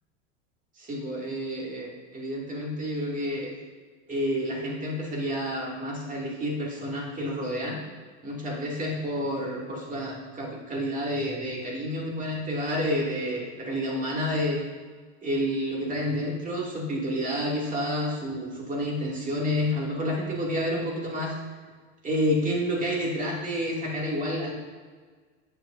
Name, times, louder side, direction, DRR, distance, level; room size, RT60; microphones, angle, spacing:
voice 1, 0.8-3.5 4.1-7.8 8.2-14.6 15.2-21.3 22.0-24.5, equal, 20° right, -3 dB, 2.4 m, -29 dB
10.5 x 8.3 x 2.6 m, 1.5 s
hypercardioid pair, 110°, 38 cm